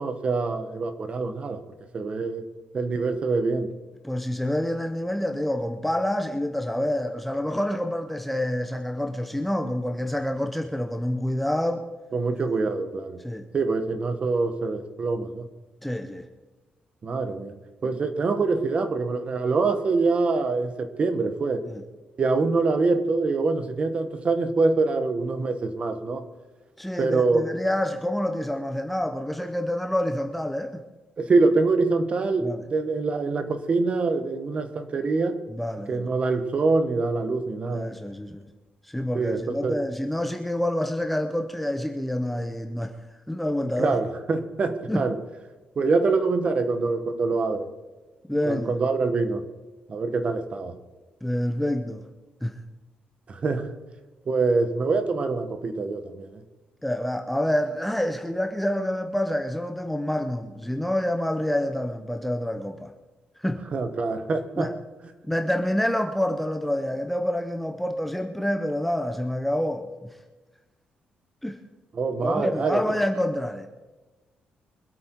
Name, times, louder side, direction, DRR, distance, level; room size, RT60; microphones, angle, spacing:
voice 1, 0.0-1.6 1.9-2.4 2.7-3.8 12.1-13.2 13.5-15.5 17.0-21.6 22.2-26.3 27.0-27.4 31.2-35.4 35.9-37.9 39.1-39.7 43.8-45.2 45.8-47.7 48.4-49.5 49.9-50.8 53.3-53.7 54.3-56.4 63.7-64.7 71.9-73.0, right 3 dB, 35° right, 1.2 m, -25 dB
voice 2, 4.0-11.8 13.2-13.5 15.8-16.2 21.6-21.8 26.8-30.8 32.4-32.6 35.5-36.1 37.7-38.5 38.8-43.0 43.3-44.0 44.9-45.1 48.3-48.7 51.2-52.0 52.4-52.6 56.8-62.9 63.4-63.6 64.6-64.7 65.3-70.1 71.4-71.6 72.2-73.7, left 1 dB, 5° left, 0.8 m, -27 dB
24.5 x 8.5 x 4.6 m
cardioid pair, 160°, 3 cm